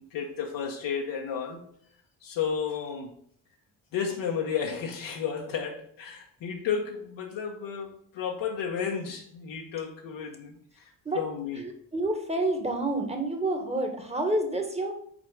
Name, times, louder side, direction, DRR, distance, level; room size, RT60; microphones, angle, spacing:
voice 1, 0.1-1.6 2.2-3.1 3.9-11.6, left 7 dB, 65° left, 0 dB, 1.1 m, -32 dB
voice 2, 11.6-14.9, right 2 dB, 15° right, 3 dB, 1.7 m, -29 dB
6.2 x 4.3 x 5.0 m, 0.65 s
hypercardioid pair, 60°, 48 cm